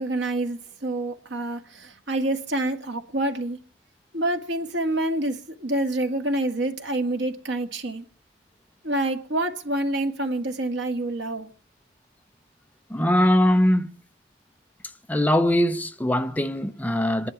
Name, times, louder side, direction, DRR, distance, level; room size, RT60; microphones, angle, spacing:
voice 1, 0.0-3.6 4.1-8.0 8.8-11.5, right 1 dB, 80° right, 1.9 m, -27 dB
voice 2, 12.9-13.9 15.1-17.3, left 1 dB, 10° left, 0.7 m, -21 dB
27.0 x 11.0 x 4.4 m
head